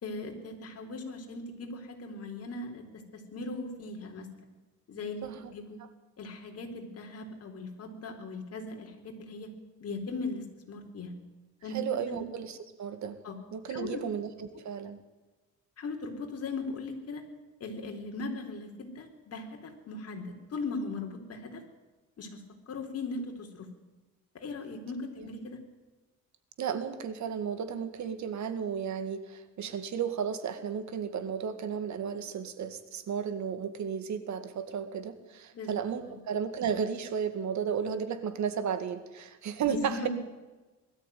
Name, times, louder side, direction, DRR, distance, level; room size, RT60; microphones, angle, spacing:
voice 1, 0.0-4.4 4.9-5.8 6.2-9.5 9.8-11.1 11.6-11.8 12.1-12.2 13.2-13.3 13.7-14.0 15.8-17.2 17.6-21.6 22.2-22.4 22.7-23.7 24.3-25.6 35.5-35.7 36.1-36.2 39.6-40.1, left 3 dB, 55° left, 3 dB, 3.9 m, -39 dB
voice 2, 5.2-5.5 11.7-12.5 12.8-13.2 13.5-15.0 26.6-40.1, right 7 dB, 70° right, 10 dB, 2.0 m, -33 dB
20.5 x 13.5 x 9.4 m, 1.2 s
cardioid pair, 125°, 30 cm